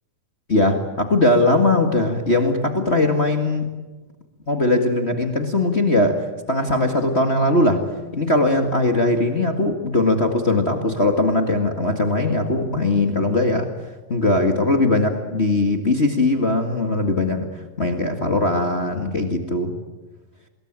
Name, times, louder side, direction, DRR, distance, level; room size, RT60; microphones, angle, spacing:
voice 1, 0.5-3.7 4.5-7.8 8.1-13.7 14.1-17.5 17.8-19.7, left 2 dB, 30° left, 5 dB, 1.2 m, -20 dB
25.5 x 21.5 x 8.9 m, 1.2 s
omnidirectional pair, 4.1 m